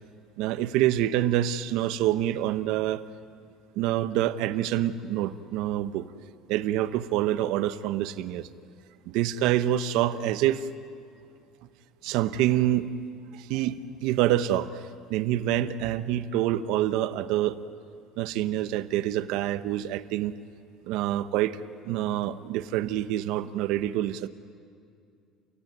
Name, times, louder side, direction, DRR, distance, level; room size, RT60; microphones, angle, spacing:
voice 1, 0.4-3.0 3.7-6.1 6.5-8.5 9.1-10.7 12.0-12.9 13.3-14.8 15.1-17.6 18.2-20.3 20.8-21.6 21.9-24.3, right 12 dB, 75° right, 12 dB, 0.9 m, -26 dB
30.0 x 17.0 x 9.5 m, 2.3 s
cardioid pair, 155°, 0 cm